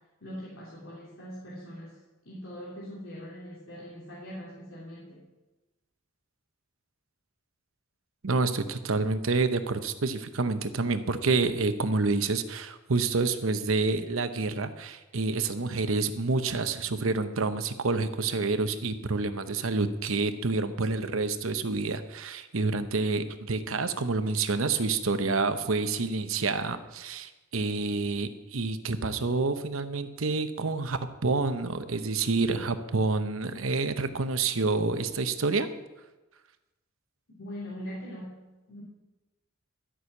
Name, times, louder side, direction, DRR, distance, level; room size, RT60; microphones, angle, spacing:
voice 1, 0.2-2.0 2.2-5.2 37.4-38.4 38.7-38.8, equal, 75° left, -7 dB, 3.0 m, -41 dB
voice 2, 8.2-35.7, right 3 dB, 85° right, 10 dB, 0.9 m, -28 dB
12.5 x 6.3 x 8.2 m, 1.1 s
head